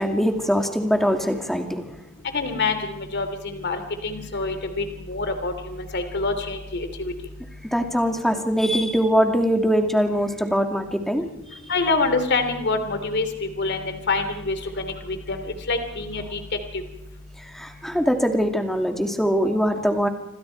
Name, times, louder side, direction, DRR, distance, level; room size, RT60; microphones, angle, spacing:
voice 1, 0.0-1.9 7.7-11.3 11.5-11.6 17.4-20.1, equal, ahead, 4 dB, 2.4 m, -22 dB
voice 2, 2.3-7.1 11.7-16.4, left 3 dB, 55° left, 8 dB, 2.9 m, -26 dB
27.5 x 25.5 x 4.6 m, 0.88 s
head